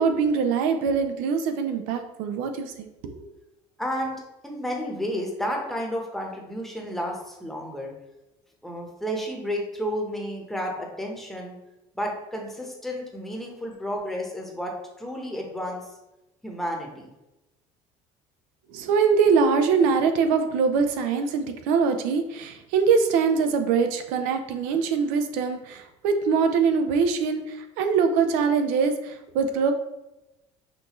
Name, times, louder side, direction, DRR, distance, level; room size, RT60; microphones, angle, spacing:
voice 1, 0.0-3.1 18.7-27.4 27.8-29.7, right 5 dB, 85° right, 7 dB, 0.5 m, -23 dB
voice 2, 3.8-7.9 8.6-11.6 11.9-15.8 16.4-17.1, equal, ahead, -1 dB, 0.9 m, -31 dB
5.7 x 2.5 x 3.0 m, 0.98 s
cardioid pair, 125°, 14 cm